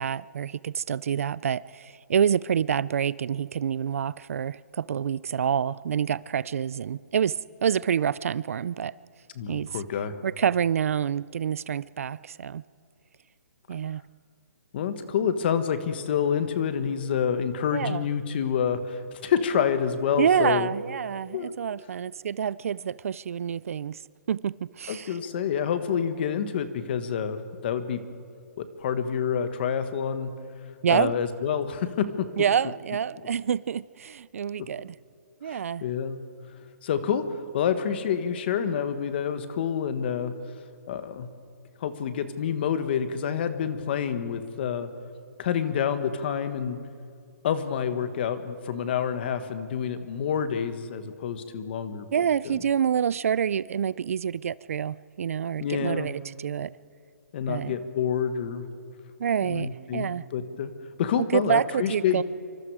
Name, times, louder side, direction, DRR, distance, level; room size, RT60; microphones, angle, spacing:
voice 1, 0.0-8.9 9.5-9.7 10.2-12.6 13.7-14.0 17.7-18.1 20.2-24.0 24.3-25.1 30.8-31.1 32.4-35.0 35.4-35.8 52.1-56.7 57.5-57.7 59.2-60.2 61.2-62.2, right 8 dB, 55° right, 0.4 m, -27 dB
voice 2, 9.3-10.1 14.7-20.7 21.3-21.5 24.9-28.0 28.6-30.3 30.9-32.3 35.5-36.2 36.8-37.3 37.5-40.3 40.9-41.3 41.8-44.9 45.4-46.8 47.4-52.1 52.4-52.6 55.6-56.1 57.3-58.6 59.4-60.7 61.0-62.2, left 8 dB, 35° left, 1.6 m, -28 dB
26.5 x 25.0 x 4.9 m
hypercardioid pair, 165°, 9 cm